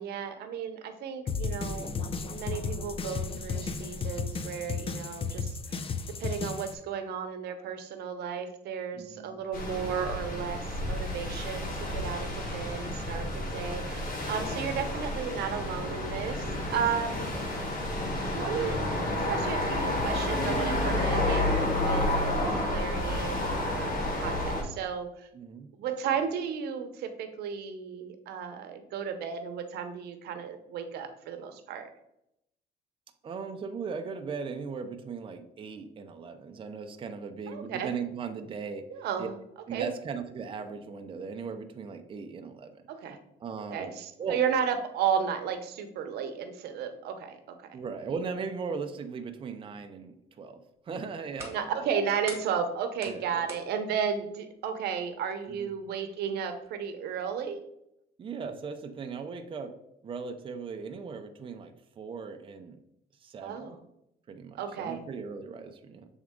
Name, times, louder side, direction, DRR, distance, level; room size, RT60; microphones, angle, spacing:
voice 1, 0.0-1.9 2.3-5.8 6.2-17.3 18.2-25.3 25.8-31.9 37.5-37.9 38.9-39.3 39.7-39.9 42.9-43.2 43.7-47.6 51.5-57.7 63.4-63.8 64.5-65.0, right 7 dB, 75° right, 7 dB, 0.9 m, -34 dB
sound 1, 1.3-6.7, left 5 dB, 35° left, 0.5 m, -34 dB
voice 2, 8.9-9.4 25.3-25.7 33.2-38.9 39.2-39.3 39.7-42.9 43.4-43.9 44.2-44.4 47.7-51.9 53.0-53.5 55.5-55.7 58.2-59.7 60.0-62.8 63.2-63.7 64.3-66.1, right 5 dB, 30° right, 6 dB, 0.6 m, -38 dB
sound 2, 9.5-24.6, left 1 dB, 60° left, 1.7 m, -30 dB
sound 3, 50.7-56.7, right 2 dB, 15° right, 1.6 m, -49 dB
7.2 x 3.6 x 3.7 m, 0.80 s
cardioid pair, 110°, 17 cm